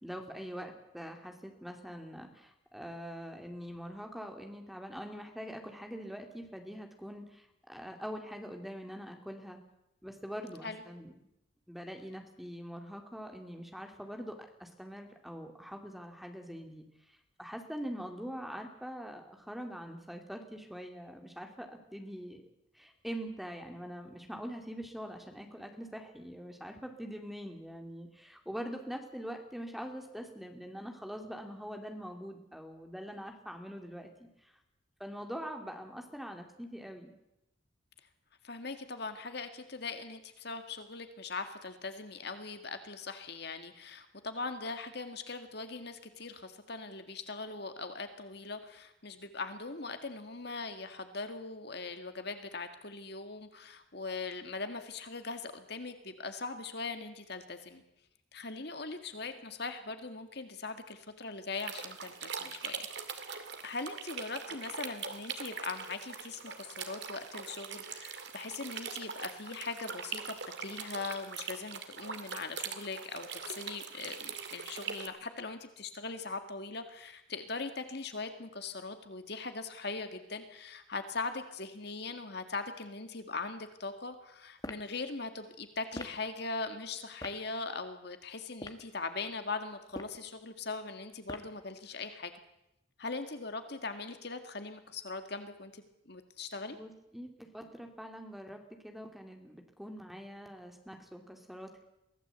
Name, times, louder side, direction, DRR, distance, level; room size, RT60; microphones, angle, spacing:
voice 1, 0.0-9.6 10.0-11.1 11.7-14.3 14.6-22.4 22.7-34.5 35.0-37.1 96.7-101.8, equal, ahead, 4 dB, 2.5 m, -44 dB
voice 2, 38.4-57.8 58.3-62.9 63.2-70.4 70.6-92.3 93.0-96.8, left 3 dB, 55° left, 8 dB, 1.9 m, -40 dB
sound 1, 61.5-75.1, right 6 dB, 60° right, 2.3 m, -42 dB
sound 2, 84.6-84.9 85.9-86.2 87.2-87.4 88.5-88.9 89.8-90.2 91.3-91.6, left 1 dB, 20° left, 1.5 m, -43 dB
23.5 x 16.0 x 8.1 m, 0.86 s
head